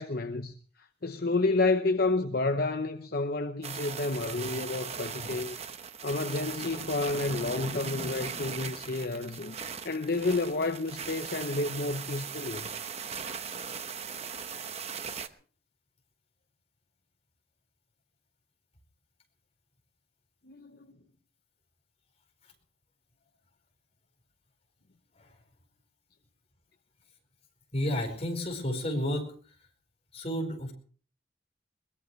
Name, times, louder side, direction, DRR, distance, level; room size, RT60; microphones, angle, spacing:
voice 1, 0.0-5.6 6.0-9.6 9.8-12.7 20.4-21.0, left 3 dB, 55° left, 0.8 m, -30 dB
sound 1, 3.6-15.3, right 6 dB, 35° right, 0.9 m, -39 dB
voice 2, 27.7-29.3 30.1-30.7, equal, 35° left, 4.9 m, -31 dB
22.0 x 20.0 x 3.2 m
head